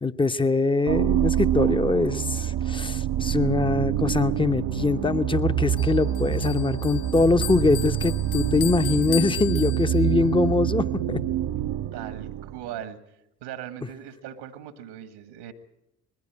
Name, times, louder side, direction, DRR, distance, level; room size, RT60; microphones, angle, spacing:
voice 1, 0.0-11.2, left 3 dB, 10° left, 11 dB, 0.9 m, -23 dB
sound 1, 0.9-12.7, right 11 dB, 55° right, 0.8 m, -26 dB
Bell, 5.8-10.3, left 14 dB, 75° left, 0.7 m, -36 dB
voice 2, 11.9-13.0 13.4-15.5, right 10 dB, 75° right, 11 dB, 1.7 m, -39 dB
21.0 x 14.5 x 8.8 m, 0.85 s
hypercardioid pair, 50°, 46 cm